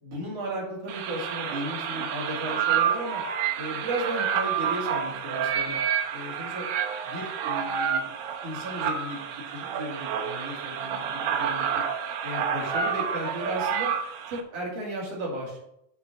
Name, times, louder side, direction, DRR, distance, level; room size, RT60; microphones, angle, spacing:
voice 1, 0.0-3.2 3.6-5.8 6.1-6.7 7.0-8.1 8.4-11.8 12.2-13.9 14.3-15.7, right 1 dB, 45° right, -3 dB, 3.3 m, -35 dB
sound 1, 0.9-14.4, right 7 dB, 80° right, 2.7 m, -29 dB
6.8 x 6.6 x 6.1 m, 0.78 s
omnidirectional pair, 4.2 m